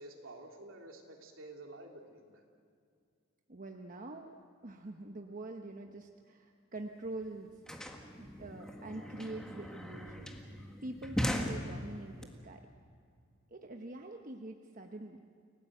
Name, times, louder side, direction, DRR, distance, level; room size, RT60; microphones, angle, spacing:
voice 1, 0.0-2.4, right 2 dB, 75° right, 1 dB, 3.4 m, -50 dB
voice 2, 3.5-4.3 4.6-7.5 8.2-10.3 10.8-12.6 13.5-15.2, right 2 dB, 40° right, 3 dB, 1.1 m, -45 dB
sound 1, 6.8-6.9 7.0-12.2, equal, 5° left, 1.7 m, -39 dB
29.0 x 18.0 x 7.8 m, 2.3 s
head